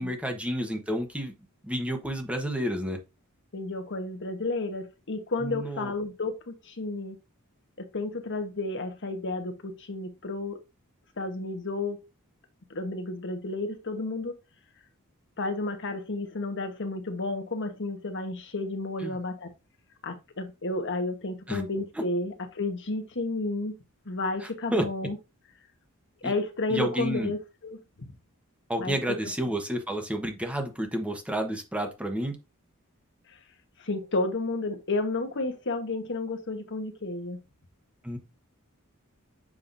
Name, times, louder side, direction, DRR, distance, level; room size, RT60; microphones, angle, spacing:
voice 1, 0.0-1.3 1.6-3.0 5.4-5.9 19.0-19.2 21.5-21.6 24.4-24.8 26.2-26.3 26.7-27.3 28.7-32.4 38.0-38.2, equal, 5° right, 1.1 m, -30 dB
voice 2, 3.5-7.2 7.8-10.6 11.2-12.0 12.7-14.4 15.4-19.5 20.0-23.8 24.1-25.2 26.2-27.8 28.8-29.0 29.2-29.3 33.8-37.4, left 2 dB, 55° left, 1.2 m, -32 dB
7.5 x 5.8 x 2.6 m
head